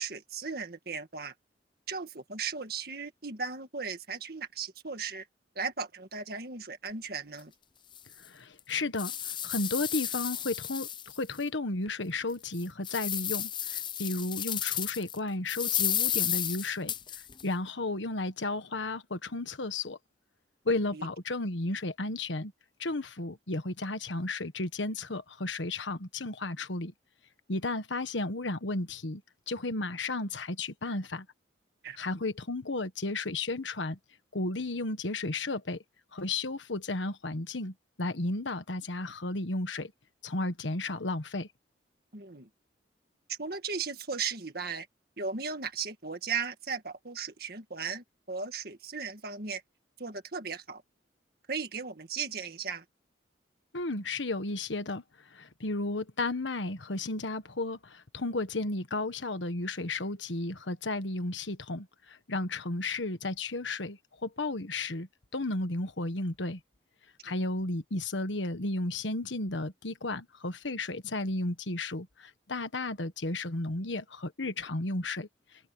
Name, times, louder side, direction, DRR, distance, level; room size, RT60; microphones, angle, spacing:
voice 1, 0.0-1.3 1.9-5.3 5.6-7.5 20.9-21.1 31.8-32.1 42.1-42.5 43.3-44.9 45.2-49.6 50.0-50.8 51.5-52.8, right 5 dB, 55° right, 1.9 m, -36 dB
sound 1, 7.3-7.4 8.0-8.1 8.6-11.4 11.9-12.0 12.5-15.2 15.5-17.4, left 10 dB, 25° left, 0.5 m, -32 dB
voice 2, 8.2-9.1 9.4-16.9 17.4-20.0 20.6-22.5 22.8-26.9 27.5-29.2 29.5-31.3 32.0-34.0 34.3-35.8 36.1-39.9 40.2-41.5 53.7-66.6 67.2-75.3, left 2 dB, 85° left, 1.5 m, -33 dB
open air
head